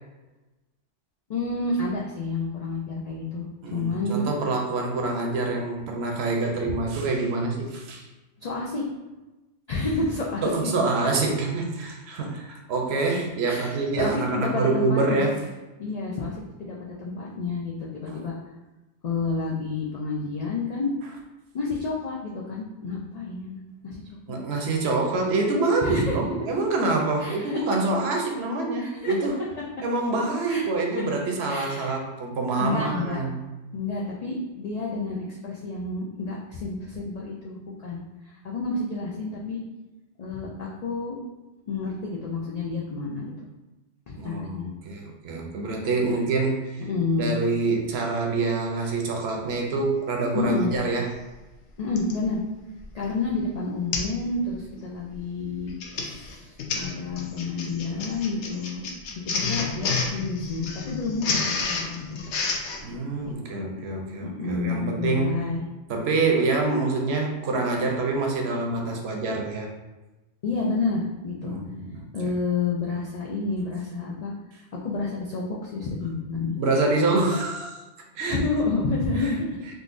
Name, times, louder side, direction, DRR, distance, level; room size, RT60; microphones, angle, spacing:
voice 1, 1.3-4.2 8.4-8.9 9.7-10.4 13.4-15.3 15.8-18.3 19.0-20.9 21.5-24.4 25.8-26.2 27.2-27.6 28.8-29.1 30.5-30.6 31.5-32.0 32.6-33.2 33.7-39.6 40.2-41.2 41.7-43.5 44.1-44.7 46.9-47.3 50.3-50.7 51.8-52.4 52.9-58.9 59.2-62.2 63.2-63.8 64.2-65.6 70.4-71.6 72.1-74.3 74.7-76.6 78.3-79.5, left 3 dB, 90° left, -4 dB, 0.3 m, -30 dB
voice 2, 3.6-8.1 10.4-15.4 18.1-18.2 24.3-29.5 29.8-33.4 44.2-46.9 47.2-51.1 53.0-53.1 62.8-65.4 65.9-69.7 71.4-72.3 76.6-77.8 78.2-78.4 79.2-79.3, right 3 dB, 65° right, 1 dB, 0.8 m, -26 dB
Printer, 52.0-52.2 52.8-53.0 53.3-53.4 53.9-54.2 54.5-54.8 55.6-62.8, left 4 dB, 75° left, 0.8 m, -30 dB
3.7 x 2.4 x 2.4 m, 1.1 s
omnidirectional pair, 1.2 m